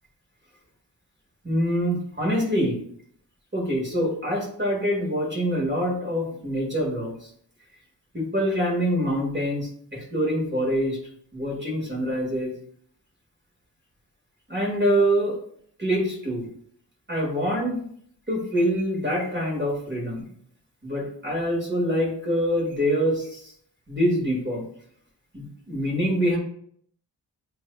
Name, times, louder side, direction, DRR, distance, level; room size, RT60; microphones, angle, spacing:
voice 1, 1.4-2.7 3.5-7.1 8.1-11.0 11.3-12.5 14.5-15.4 15.8-16.4 17.1-17.8 18.3-20.3 20.8-23.5 23.9-24.6 25.3-26.4, equal, 25° right, -3 dB, 2.0 m, -25 dB
7.8 x 2.7 x 2.3 m, 0.64 s
wide cardioid pair, 55°, 45 cm